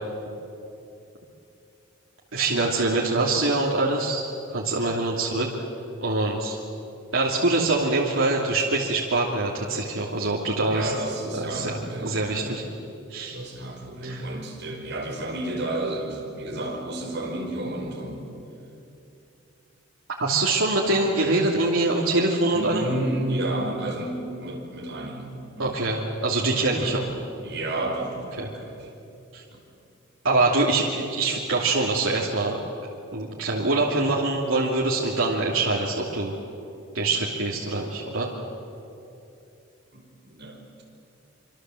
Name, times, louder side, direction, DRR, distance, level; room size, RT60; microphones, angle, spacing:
voice 1, 2.3-5.5 6.0-6.6 7.1-10.9 11.3-12.6 13.1-13.4 14.0-14.3 20.2-22.9 25.6-27.0 28.4-28.5 29.3-29.4 30.2-32.6 33.1-36.3 36.9-38.3, right 2 dB, 85° right, -3 dB, 2.9 m, -24 dB
voice 2, 10.7-12.6 13.3-18.3 20.8-21.0 22.5-25.8 26.8-27.1 27.4-28.9 29.5-29.6 39.9-40.8, right 1 dB, 60° right, -1 dB, 5.3 m, -32 dB
25.5 x 25.5 x 7.8 m, 2.7 s
head